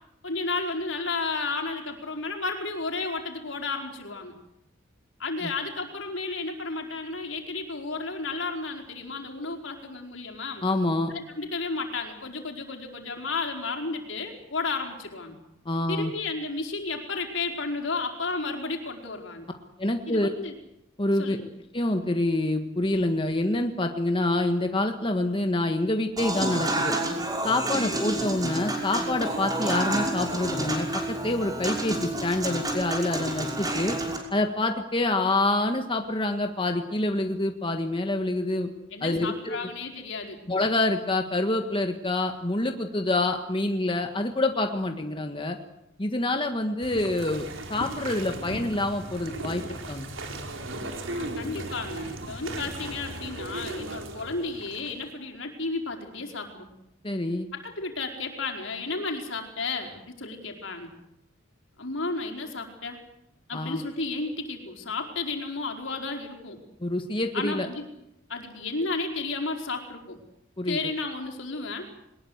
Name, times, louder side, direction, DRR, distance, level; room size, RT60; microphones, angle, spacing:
voice 1, 0.2-4.3 5.2-10.6 11.4-15.4 15.9-19.5 20.1-20.5 21.2-21.5 38.9-40.4 51.1-56.7 57.5-60.9 61.8-63.0 63.5-66.6 67.3-67.8 68.3-70.2 70.7-71.9, left 3 dB, 75° left, 3 dB, 4.8 m, -32 dB
voice 2, 10.6-11.1 15.6-16.1 19.8-20.3 21.0-21.4 21.7-26.9 27.4-34.0 34.3-38.7 39.0-39.6 40.5-45.6 46.0-50.1 57.0-57.5 63.5-63.8 66.8-67.7 70.6-70.8, left 2 dB, 25° left, 5 dB, 1.6 m, -27 dB
Human voice / Acoustic guitar / Piano, 26.2-34.2, right 2 dB, 20° right, 5.8 m, -29 dB
sound 1, 46.8-55.1, right 2 dB, 80° right, 4.3 m, -37 dB
22.5 x 21.0 x 8.2 m, 0.84 s
head